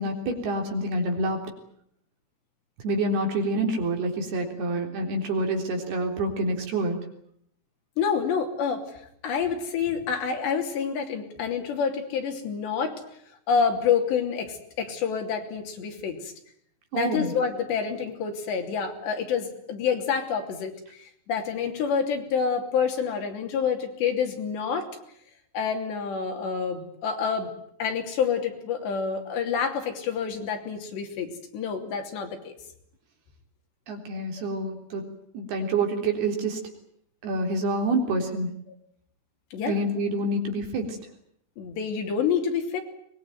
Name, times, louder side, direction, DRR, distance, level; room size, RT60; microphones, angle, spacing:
voice 1, 0.0-1.4 2.8-7.0 16.9-17.3 33.9-35.1 35.3-36.6 37.2-38.5 39.7-41.0, right 2 dB, 60° right, 4 dB, 5.5 m, -27 dB
voice 2, 8.0-8.8 9.2-13.0 13.5-16.3 16.9-24.9 25.5-27.5 27.8-32.5 39.5-39.8 41.6-42.8, left 6 dB, 70° left, 4 dB, 5.1 m, -28 dB
24.0 x 21.0 x 9.4 m, 0.70 s
omnidirectional pair, 5.2 m